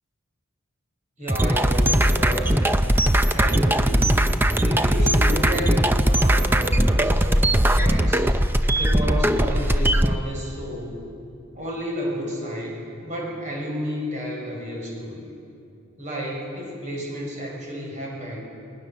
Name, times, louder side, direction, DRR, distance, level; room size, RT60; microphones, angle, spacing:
voice 1, 1.2-2.6 3.2-4.2 4.5-8.3 8.8-11.0 11.5-15.3 16.0-18.4, equal, 35° right, -2 dB, 6.3 m, -31 dB
sound 1, 1.3-10.2, right 1 dB, 10° right, 0.6 m, -19 dB
29.5 x 20.0 x 6.7 m, 2.6 s
head